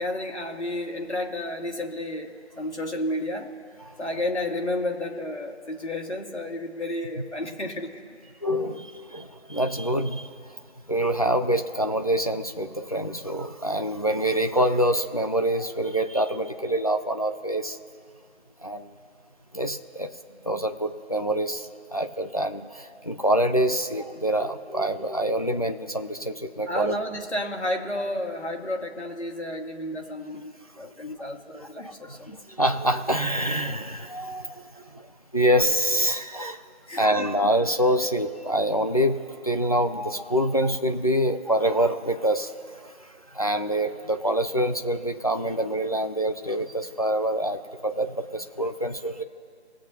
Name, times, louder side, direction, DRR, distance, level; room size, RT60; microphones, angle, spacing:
voice 1, 0.0-3.5 4.0-7.9 13.9-14.0 26.7-32.4 36.9-37.3, left 1 dB, 75° left, 2 dB, 1.9 m, -31 dB
voice 2, 8.4-10.3 10.9-17.8 18.6-18.9 19.5-20.1 20.4-26.9 31.6-32.2 32.5-36.7 36.9-42.5 42.8-49.2, right 1 dB, 35° left, 6 dB, 0.5 m, -26 dB
20.5 x 8.5 x 2.8 m, 2.3 s
figure-of-eight pair, 160°, 35 cm